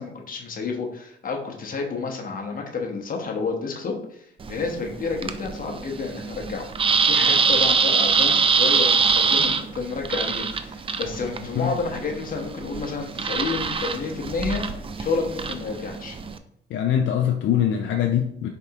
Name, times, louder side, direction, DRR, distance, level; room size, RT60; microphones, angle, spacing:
voice 1, 0.0-6.7 7.0-16.2, left 4 dB, 45° left, 1 dB, 1.0 m, -30 dB
sound 1, 4.4-16.4, right 5 dB, 30° right, 0.4 m, -24 dB
voice 2, 16.7-18.5, left 9 dB, 70° left, 3 dB, 0.5 m, -23 dB
4.6 x 3.4 x 2.8 m, 0.70 s
cardioid pair, 90°, 20 cm